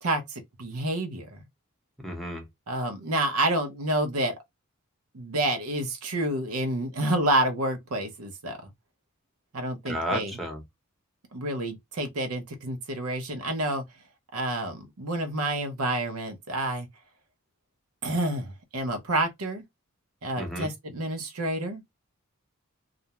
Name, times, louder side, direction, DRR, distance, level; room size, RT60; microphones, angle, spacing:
voice 1, 0.0-1.4 2.7-4.3 5.1-8.7 9.5-10.3 11.3-13.8 14.3-16.9 18.0-19.6 20.2-21.8, right 1 dB, 85° right, 0.7 m, -29 dB
voice 2, 2.0-2.5 9.9-10.6 20.4-20.7, equal, ahead, 0.7 m, -32 dB
2.4 x 2.1 x 2.9 m
head